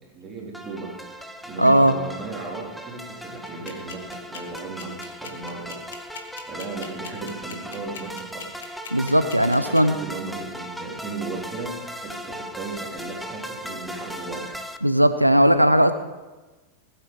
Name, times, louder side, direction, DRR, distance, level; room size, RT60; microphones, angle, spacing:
voice 1, 0.0-1.0 1.4-5.9 6.4-8.7 9.0-14.5, right 3 dB, 20° right, -2 dB, 3.6 m, -36 dB
sound 1, 0.5-14.8, equal, ahead, 0.9 m, -38 dB
voice 2, 1.6-1.9 8.9-9.9 14.8-15.9, equal, 90° right, 10 dB, 0.7 m, -17 dB
sound 2, 3.5-9.8, left 7 dB, 65° left, 1.7 m, -39 dB
19.0 x 8.4 x 5.3 m, 1.2 s
figure-of-eight pair, 90°, 0 cm